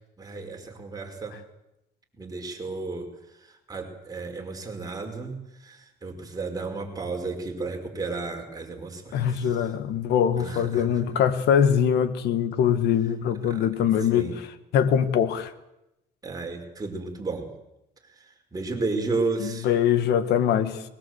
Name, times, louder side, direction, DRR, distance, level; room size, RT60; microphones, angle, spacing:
voice 1, 0.2-1.4 2.2-3.1 3.4-9.5 10.4-11.0 13.5-13.7 14.1-14.4 16.2-17.5 18.2-19.7, right 3 dB, 20° right, 5.2 m, -33 dB
voice 2, 9.1-14.5 14.7-15.5 19.4-20.8, left 8 dB, 75° left, 1.8 m, -23 dB
22.0 x 21.5 x 8.1 m
cardioid pair, 110°, 17 cm